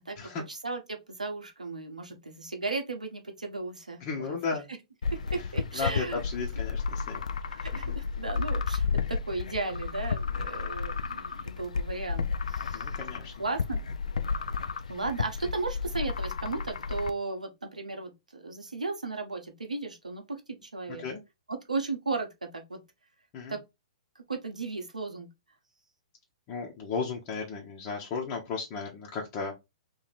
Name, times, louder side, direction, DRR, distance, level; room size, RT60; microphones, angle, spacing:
voice 1, 0.0-4.0 4.3-4.6 5.3-6.2 7.5-12.9 13.4-13.8 14.9-21.0 21.5-22.8 23.5-23.6 24.1-25.3, right 3 dB, 90° right, 1.0 m, -35 dB
voice 2, 4.0-4.6 5.7-7.2 7.9-8.0 12.7-13.3 21.0-21.2 23.3-23.6 26.5-29.5, left 5 dB, 35° left, 1.0 m, -34 dB
sound 1, 5.0-17.1, left 5 dB, 75° left, 0.5 m, -32 dB
3.1 x 2.7 x 4.1 m
figure-of-eight pair, 120°, 4 cm